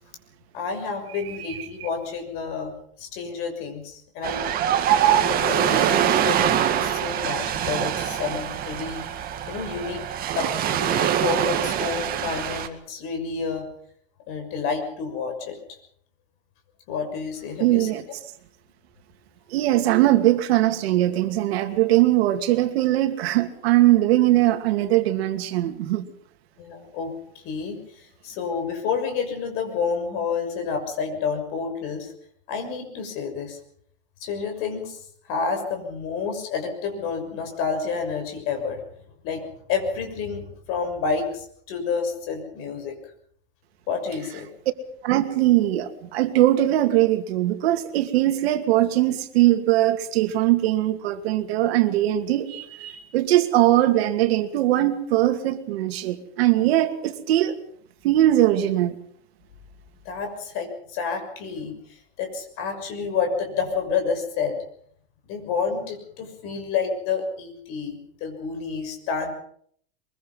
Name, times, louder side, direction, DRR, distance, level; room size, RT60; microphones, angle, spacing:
voice 1, 0.5-2.7 3.0-4.4 5.2-10.0 10.3-13.6 14.3-15.6 16.9-17.9 26.6-27.1 27.4-32.1 32.5-33.6 34.2-35.0 35.3-38.8 39.2-42.9 43.9-44.5 60.0-64.6 65.3-69.3, left 5 dB, 45° left, 6.5 m, -29 dB
Ocean, 4.2-12.7, right 10 dB, 30° right, 1.9 m, -23 dB
voice 2, 17.6-18.0 19.5-26.0 45.0-57.6 58.0-59.0, right 14 dB, 70° right, 2.6 m, -21 dB
23.0 x 23.0 x 5.7 m
supercardioid pair, 160°, 32 cm